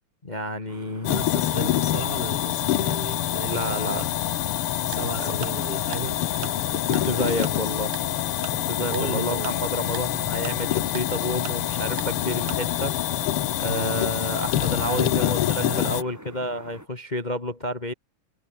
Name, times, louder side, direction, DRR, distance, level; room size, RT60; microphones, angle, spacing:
voice 1, 0.2-1.3 3.5-4.1 5.2-5.3 7.0-7.9 8.7-12.9 13.6-17.9, left 1 dB, 25° left, 0.9 m, -30 dB
sound 1, 0.7-16.9, right 1 dB, 5° right, 4.5 m, -44 dB
sound 2, 1.0-16.0, left 13 dB, 65° left, 1.5 m, -26 dB
voice 2, 1.1-4.1 4.9-7.7 8.8-9.5 13.6-14.0 14.5-16.0, right 3 dB, 50° right, 0.6 m, -35 dB
Tick-tock, 4.9-5.0 5.4-5.5 5.9-6.0 6.4-6.5 6.9-7.0 7.4-7.5 7.9-8.0 8.4-8.5 8.9-9.0 9.4-9.5 9.9-10.0 10.4-10.5 10.9-11.0 11.4-11.5 12.0-12.1 12.5-12.6, right 16 dB, 75° right, 1.6 m, -36 dB
omnidirectional pair, 3.3 m